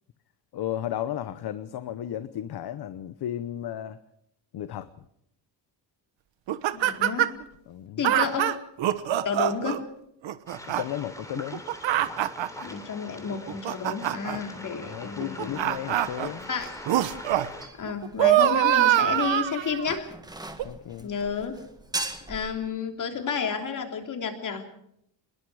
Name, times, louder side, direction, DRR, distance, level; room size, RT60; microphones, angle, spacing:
voice 1, 0.5-4.0 4.5-4.9 7.7-8.1 10.7-11.6 14.8-16.5 20.6-21.1, left 11 dB, 60° left, 12 dB, 1.0 m, -34 dB
sound 1, 6.5-7.4 8.0-9.8 10.2-10.8 11.4-12.6 13.3-14.4 15.2-16.3 16.9-17.5 17.9-20.0 20.6-20.7, right 13 dB, 80° right, 1.3 m, -24 dB
voice 2, 6.7-7.3 8.0-8.5 9.2-9.8 12.6-15.7 16.5-16.7 17.8-20.1 21.0-21.6 22.3-24.6, left 6 dB, 45° left, 5 dB, 3.2 m, -31 dB
Waves surf, 10.5-17.7, left 1 dB, 5° left, 3.3 m, -43 dB
sound 2, 15.5-22.5, right 2 dB, 10° right, 1.7 m, -41 dB
25.0 x 21.0 x 4.9 m, 0.75 s
cardioid pair, 160°, 44 cm